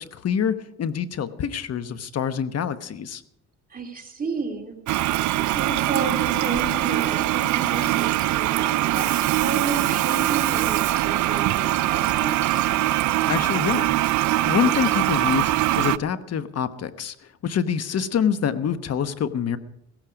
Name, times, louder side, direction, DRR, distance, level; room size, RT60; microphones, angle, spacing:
voice 1, 0.0-3.2 13.3-13.9 14.4-17.1 17.4-19.6, left 7 dB, 55° left, 12 dB, 1.1 m, -26 dB
voice 2, 3.7-4.8 5.0-12.7, right 3 dB, 30° right, 3 dB, 2.5 m, -32 dB
Toilet flush, 4.9-16.0, right 15 dB, 75° right, 0.5 m, -22 dB
16.0 x 15.5 x 5.1 m, 0.78 s
cardioid pair, 90°, 30 cm